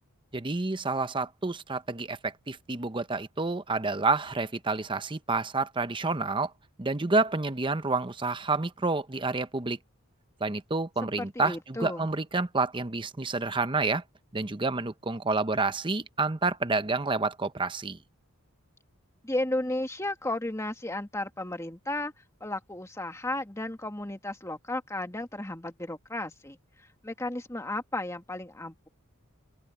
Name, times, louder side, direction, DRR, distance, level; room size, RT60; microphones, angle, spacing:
voice 1, 0.3-6.5 6.8-9.8 10.4-14.0 14.3-18.0, right 3 dB, 20° right, 0.8 m, -29 dB
voice 2, 11.2-12.1 19.2-22.1 22.4-26.6 27.0-28.9, left 1 dB, 15° left, 1.8 m, -34 dB
open air
head